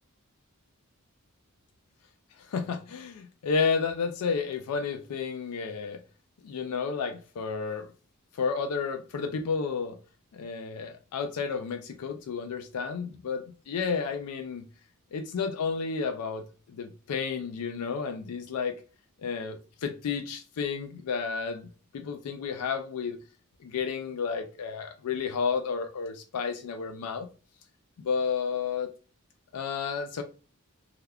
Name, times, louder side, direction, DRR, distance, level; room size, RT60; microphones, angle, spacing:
voice 1, 2.5-6.0 6.4-7.9 8.4-10.0 10.3-14.7 15.1-18.8 19.2-23.2 23.6-27.3 28.0-28.9 29.5-30.2, left 5 dB, 85° left, 6 dB, 0.4 m, -31 dB
3.4 x 2.3 x 2.2 m, 0.36 s
head